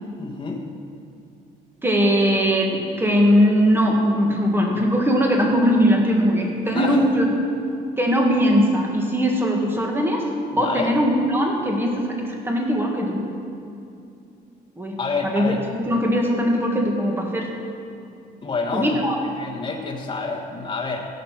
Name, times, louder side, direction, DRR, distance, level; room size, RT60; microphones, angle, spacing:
voice 1, 0.2-0.6 6.7-7.0 10.5-10.9 15.0-15.6 18.4-19.0 19.4-21.1, left 4 dB, 30° left, 0 dB, 1.5 m, -28 dB
voice 2, 1.8-7.3 8.0-10.2 10.6-13.3 14.8-17.5 18.7-19.2, equal, 15° right, 0 dB, 2.0 m, -20 dB
16.0 x 6.8 x 5.9 m, 2.5 s
cardioid pair, 110°, 17 cm